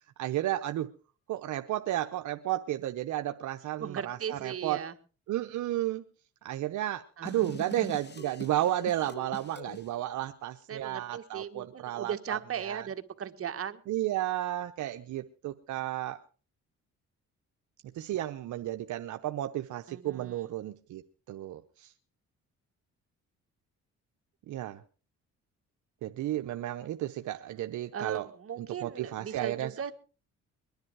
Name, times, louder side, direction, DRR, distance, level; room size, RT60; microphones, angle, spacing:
voice 1, 0.2-0.9 1.3-4.8 5.3-6.0 6.4-12.9 13.9-16.2 17.9-21.0 21.3-21.9 24.5-24.8 26.0-28.3 28.6-29.7, right 13 dB, 75° right, 7 dB, 0.9 m, -33 dB
voice 2, 3.8-4.9 7.2-7.5 10.7-13.8 19.9-20.4 27.9-29.9, right 8 dB, 50° right, 8 dB, 1.6 m, -37 dB
sound 1, 7.2-9.9, left 4 dB, 35° left, 1.5 m, -44 dB
22.0 x 10.5 x 4.7 m, 0.37 s
cardioid pair, 90°, 30 cm